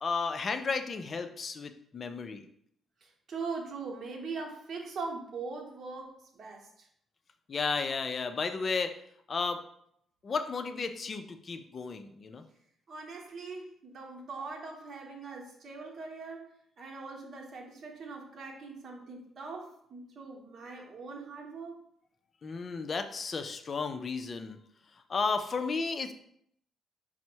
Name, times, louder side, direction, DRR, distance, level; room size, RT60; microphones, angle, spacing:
voice 1, 0.0-2.5 7.5-9.0 9.3-9.6 10.2-12.4 22.4-24.6 25.1-26.1, left 4 dB, 40° left, 8 dB, 0.4 m, -33 dB
voice 2, 3.0-6.9 12.9-16.5 16.8-21.8, right 4 dB, 55° right, 0 dB, 0.9 m, -41 dB
4.3 x 2.0 x 4.4 m, 0.70 s
cardioid pair, 90°, 0 cm